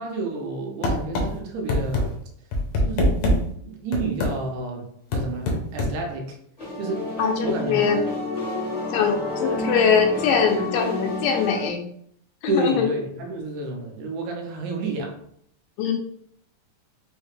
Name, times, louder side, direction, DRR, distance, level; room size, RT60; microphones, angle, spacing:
voice 1, 0.0-2.2 2.8-6.4 6.8-7.1 7.4-7.7 12.5-15.2, right 2 dB, 75° right, 1.8 m, -30 dB
sound 1, 0.8-1.3 1.7-2.0 2.5-3.4 3.9-4.3 5.1-5.9, left 1 dB, 70° left, 1.6 m, -21 dB
sound 2, 6.6-11.7, left 2 dB, 55° left, 0.4 m, -29 dB
voice 2, 7.2-8.0 8.9-11.8 12.4-12.9 15.8-15.9, left 6 dB, 90° left, 2.4 m, -22 dB
5.5 x 2.1 x 3.1 m
omnidirectional pair, 3.8 m